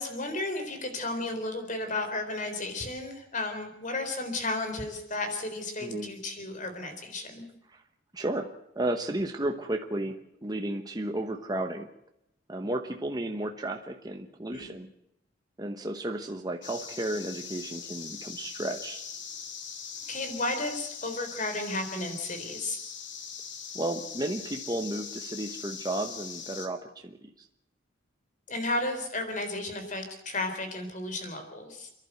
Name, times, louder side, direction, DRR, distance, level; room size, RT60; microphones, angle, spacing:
voice 1, 0.0-7.4 14.5-14.8 20.0-22.8 28.5-31.9, left 2 dB, 40° left, 7 dB, 3.9 m, -33 dB
voice 2, 5.8-6.1 7.7-7.8 8.1-11.9 12.5-14.9 15.6-19.0 23.7-27.5, right 1 dB, 20° right, 4 dB, 1.1 m, -33 dB
sound 1, 16.6-26.7, left 6 dB, 65° left, 2.3 m, -41 dB
29.0 x 11.5 x 8.0 m, 0.80 s
head